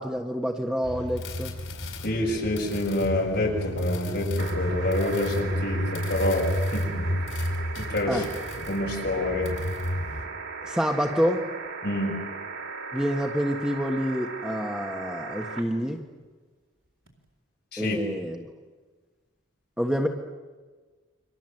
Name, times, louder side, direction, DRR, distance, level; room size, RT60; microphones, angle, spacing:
voice 1, 0.0-1.5 8.1-8.3 10.6-11.4 12.9-16.0 17.8-18.5 19.8-20.1, equal, 5° right, 2 dB, 1.4 m, -27 dB
sound 1, 0.8-10.3, equal, 85° left, 4.8 m, -31 dB
voice 2, 2.0-6.5 6.7-7.1 7.8-8.2 8.7-9.5 11.8-12.2 17.7-18.0, left 1 dB, 55° left, 0 dB, 7.0 m, -27 dB
sound 2, 4.4-15.6 17.1-17.2, right 5 dB, 85° right, 4.1 m, -37 dB
30.0 x 24.5 x 7.8 m, 1.4 s
head